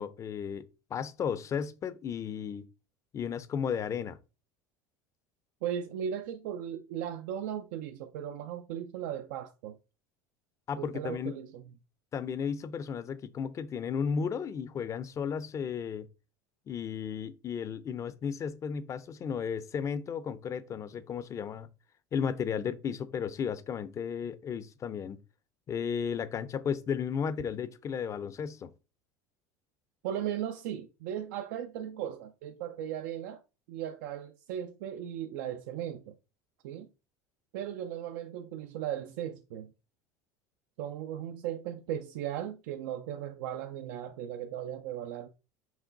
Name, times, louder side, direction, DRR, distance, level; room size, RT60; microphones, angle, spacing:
voice 1, 0.0-2.6 3.1-4.2 10.7-11.3 12.1-16.1 16.7-21.7 22.1-25.2 25.7-28.7, left 7 dB, 30° left, 0.5 m, -34 dB
voice 2, 5.6-9.8 10.8-11.6 30.0-33.4 33.7-36.2 36.6-36.9 37.5-39.7 40.8-45.3, right 10 dB, 80° right, 0.5 m, -37 dB
6.1 x 2.2 x 3.8 m
supercardioid pair, 115°, 10 cm